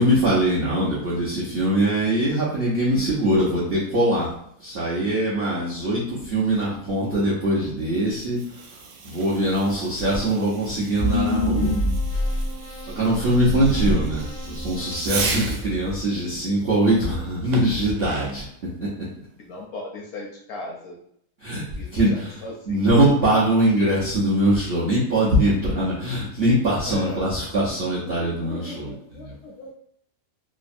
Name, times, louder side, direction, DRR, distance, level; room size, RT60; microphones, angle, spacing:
voice 1, 0.0-4.3 4.6-8.4 9.0-11.7 12.9-18.5 18.8-18.9 21.4-21.6 21.9-22.3 22.7-28.9 29.2-29.3, right 1 dB, 65° right, -8 dB, 0.6 m, -22 dB
Fireworks, 8.1-15.8 17.5-18.5, right 4 dB, 90° right, 1.3 m, -36 dB
sound 1, 11.0-12.5 13.2-14.2 14.6-14.7 15.1-16.0, left 1 dB, 50° left, 0.6 m, -24 dB
sound 2, 11.1-16.2, equal, 85° left, 1.4 m, -43 dB
voice 2, 19.4-21.0 21.7-22.0 22.4-22.8 26.9-27.3 28.0-29.7, left 2 dB, 70° left, -1 dB, 0.9 m, -37 dB
3.3 x 2.0 x 2.5 m, 0.70 s
omnidirectional pair, 1.9 m